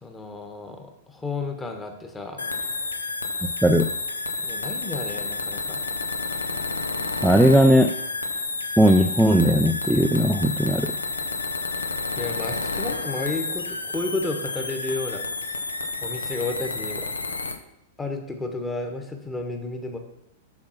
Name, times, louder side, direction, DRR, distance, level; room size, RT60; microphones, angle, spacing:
voice 1, 0.0-2.4 4.4-5.8 12.1-15.5 16.0-17.1 18.0-20.0, left 2 dB, 15° left, 5 dB, 1.3 m, -32 dB
sound 1, 2.4-17.6, left 3 dB, 80° left, 0.6 m, -30 dB
voice 2, 3.4-3.9 7.2-7.9 8.8-10.9, equal, 5° right, 5 dB, 0.4 m, -18 dB
7.3 x 5.8 x 5.8 m, 0.82 s
figure-of-eight pair, 100°, 0 cm